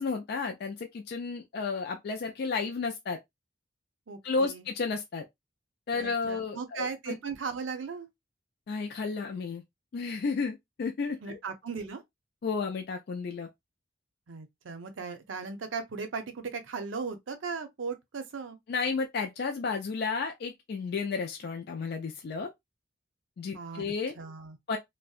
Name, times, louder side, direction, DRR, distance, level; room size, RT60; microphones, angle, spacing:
voice 1, 0.0-3.2 4.2-5.2 5.9-7.2 8.7-9.6 9.9-11.4 12.4-13.5 18.7-22.5 23.4-24.1 24.7-24.8, left 4 dB, 55° left, 0.4 m, -32 dB
voice 2, 4.1-4.7 5.9-8.1 11.2-12.0 14.3-18.6 23.5-24.6, right 5 dB, 85° right, 0.6 m, -37 dB
2.6 x 2.1 x 2.3 m
head